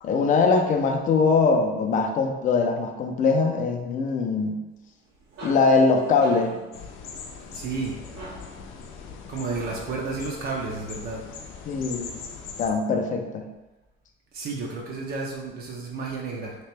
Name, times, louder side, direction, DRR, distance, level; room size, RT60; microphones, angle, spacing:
voice 1, 0.0-4.6 5.4-6.5 11.7-12.2 12.6-13.5, left 4 dB, 40° left, 4 dB, 0.4 m, -22 dB
sound 1, 4.9-10.1, right 2 dB, 85° right, 1.4 m, -44 dB
sound 2, 6.7-12.7, left 5 dB, 90° left, 0.5 m, -41 dB
voice 2, 7.5-8.0 9.3-11.2 14.3-16.5, right 4 dB, 50° right, -1 dB, 0.5 m, -31 dB
3.3 x 2.9 x 3.2 m, 1.1 s
cardioid pair, 160°, 21 cm